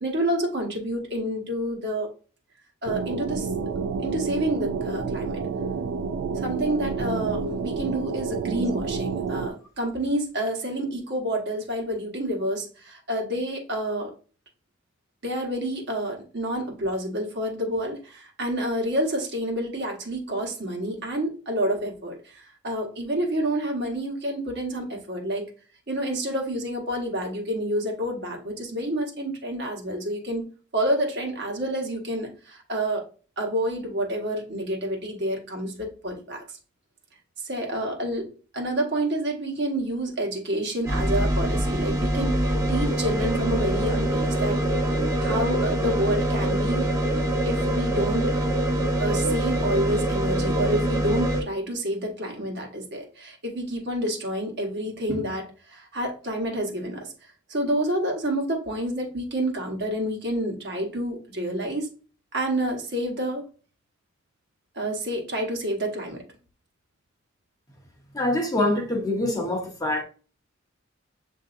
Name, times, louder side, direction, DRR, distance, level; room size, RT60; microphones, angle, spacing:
voice 1, 0.0-2.1 2.8-3.5 4.0-5.4 6.3-14.1 15.2-25.5 25.9-33.1 33.4-36.4 37.4-46.9 47.4-48.5 49.0-61.9 62.3-63.4 64.7-66.2, right 1 dB, 60° right, 1.2 m, -29 dB
sound 1, 2.8-9.5, right 5 dB, 75° right, 0.4 m, -29 dB
sound 2, 40.9-51.4, right 1 dB, 15° right, 0.8 m, -24 dB
voice 2, 68.1-70.0, left 1 dB, 20° left, 0.8 m, -25 dB
7.3 x 2.6 x 2.5 m
head